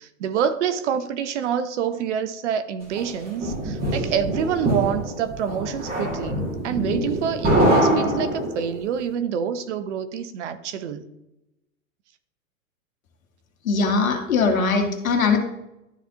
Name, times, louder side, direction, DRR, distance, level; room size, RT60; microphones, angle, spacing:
voice 1, 0.0-11.1, right 8 dB, 60° right, 11 dB, 0.9 m, -27 dB
sound 1, 3.0-8.8, right 1 dB, 20° right, 2.2 m, -24 dB
voice 2, 13.6-15.4, left 4 dB, 80° left, 3 dB, 1.7 m, -21 dB
12.0 x 4.1 x 2.9 m, 0.88 s
hypercardioid pair, 125°, 40 cm